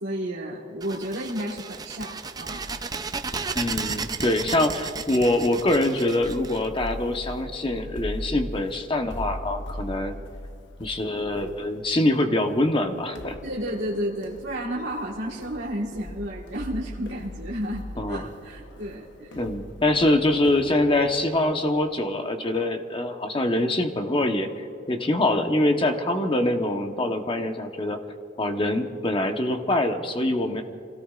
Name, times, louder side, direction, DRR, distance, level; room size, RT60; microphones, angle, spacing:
voice 1, 0.0-2.6 13.4-19.4, equal, 80° right, -5 dB, 1.6 m, -32 dB
sound 1, 0.8-7.3, right 4 dB, 20° right, 0.5 m, -34 dB
sound 2, 2.4-22.0, left 1 dB, 80° left, 1.0 m, -41 dB
voice 2, 3.5-10.2 10.8-13.3 18.0-18.2 19.3-28.0 28.4-30.6, left 1 dB, 30° left, 5 dB, 1.0 m, -24 dB
27.5 x 17.0 x 2.5 m, 2.7 s
head